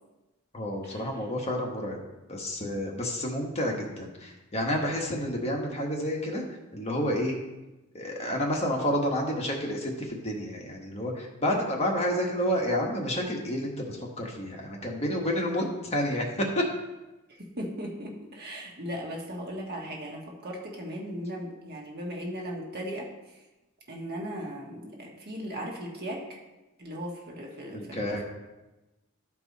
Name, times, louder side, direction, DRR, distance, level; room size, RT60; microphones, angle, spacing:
voice 1, 0.5-2.0 2.3-6.4 6.7-7.4 7.9-16.6 27.7-28.2, equal, 30° left, 0 dB, 1.3 m, -30 dB
voice 2, 17.3-23.1 23.9-26.4 26.8-28.2, equal, 45° right, -1 dB, 1.4 m, -37 dB
13.0 x 4.6 x 4.1 m, 1.0 s
head